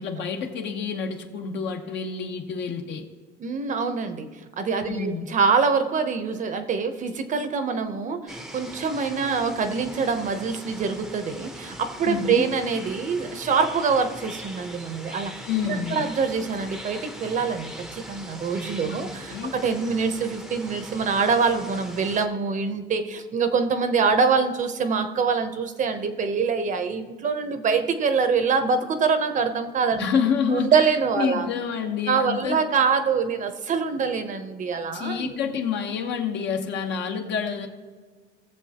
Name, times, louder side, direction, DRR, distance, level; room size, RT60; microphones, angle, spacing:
voice 1, 0.0-3.0 4.9-5.2 12.0-12.5 15.5-16.0 18.9-19.5 30.0-30.9 31.1-32.6 34.9-37.7, left 6 dB, 60° left, 4 dB, 1.2 m, -28 dB
voice 2, 3.4-4.3 4.6-30.1 30.5-31.5 32.1-35.4, right 5 dB, 40° right, 9 dB, 0.8 m, -25 dB
sound 1, 8.3-22.3, equal, ahead, 0.7 m, -40 dB
18.0 x 7.3 x 2.9 m, 1.5 s
cardioid pair, 140°, 20 cm